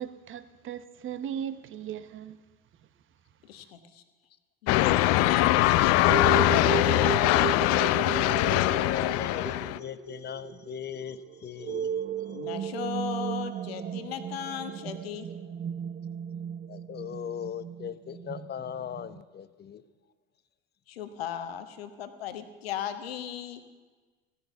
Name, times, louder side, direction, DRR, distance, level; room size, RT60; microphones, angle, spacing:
voice 1, 0.0-2.4, right 9 dB, 45° right, 1.1 m, -37 dB
voice 2, 3.4-4.0 4.6-7.7 12.3-15.3 20.9-23.6, left 10 dB, 80° left, 1.3 m, -36 dB
sound 1, 4.7-9.8, left 17 dB, 55° left, 0.6 m, -22 dB
sound 2, 6.1-19.2, right 9 dB, 25° right, 0.5 m, -35 dB
voice 3, 8.6-11.9 16.7-19.8, left 9 dB, 35° left, 0.9 m, -38 dB
15.0 x 11.0 x 7.0 m
hypercardioid pair, 75°, 30 cm